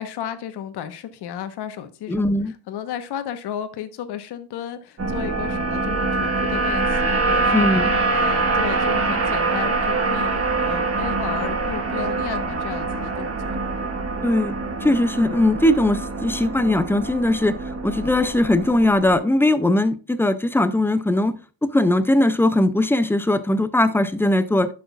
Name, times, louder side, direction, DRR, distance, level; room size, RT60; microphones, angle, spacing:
voice 1, 0.0-7.7 8.1-13.6, left 9 dB, 55° left, 10 dB, 1.1 m, -33 dB
voice 2, 2.1-2.5 7.5-7.9 14.2-17.5 17.8-21.4 21.7-24.7, left 1 dB, 5° left, 12 dB, 0.3 m, -19 dB
sound 1, 5.0-19.2, right 3 dB, 30° right, 1.5 m, -24 dB
11.0 x 6.3 x 2.4 m, 0.36 s
cardioid pair, 115°, 47 cm